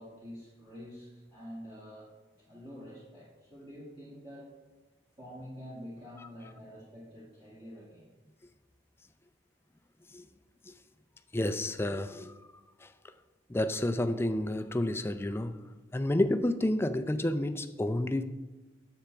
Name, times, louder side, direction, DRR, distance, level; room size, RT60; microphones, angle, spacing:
voice 1, 0.0-4.5 5.2-8.1, equal, 30° right, 2.0 m, -47 dB
voice 2, 11.3-12.3 12.8-12.9 13.5-15.6 15.9-18.2, left 1 dB, 15° left, 0.4 m, -30 dB
10.0 x 7.8 x 3.4 m
head